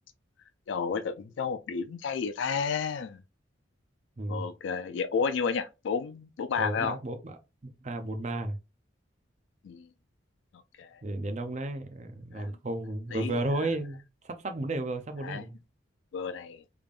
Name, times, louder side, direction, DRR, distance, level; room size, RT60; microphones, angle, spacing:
voice 1, 0.7-3.2 4.3-7.0 9.6-9.9 10.8-11.0 12.3-12.6 13.1-13.3 15.2-15.5 16.1-16.6, left 6 dB, 75° left, 0.4 m, -31 dB
voice 2, 6.6-7.4 7.6-8.6 11.0-15.6, right 2 dB, 40° right, 0.5 m, -33 dB
3.5 x 3.4 x 2.4 m
head